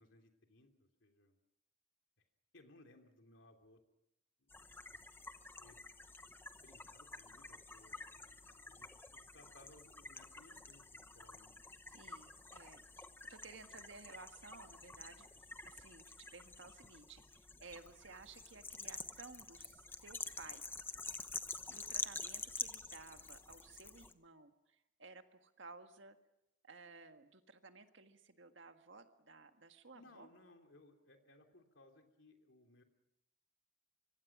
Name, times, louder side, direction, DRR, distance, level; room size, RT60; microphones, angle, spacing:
voice 1, 0.0-1.4 2.5-3.8 4.4-4.5 5.6-5.8 6.4-11.5 11.9-12.1 29.9-32.8, left 2 dB, 70° left, 4 dB, 3.2 m, -64 dB
sound 1, 4.5-24.1, left 3 dB, 10° left, 0.8 m, -49 dB
voice 2, 11.9-16.1 16.3-20.7 21.7-26.2 26.6-30.3, right 4 dB, 70° right, 7 dB, 1.7 m, -56 dB
25.0 x 24.0 x 6.1 m, 0.84 s
head